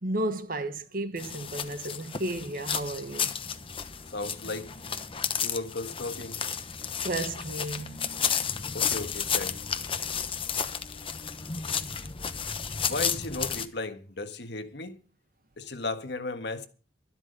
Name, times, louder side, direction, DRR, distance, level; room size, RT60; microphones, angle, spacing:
voice 1, 0.0-3.3 7.0-8.0, right 1 dB, 55° right, 1.4 m, -33 dB
sound 1, 1.2-13.7, left 7 dB, 30° left, 1.0 m, -32 dB
voice 2, 4.1-4.7 5.4-6.4 8.7-9.6 12.9-15.0 15.6-16.7, left 2 dB, 70° left, 1.6 m, -35 dB
12.5 x 12.0 x 5.3 m
head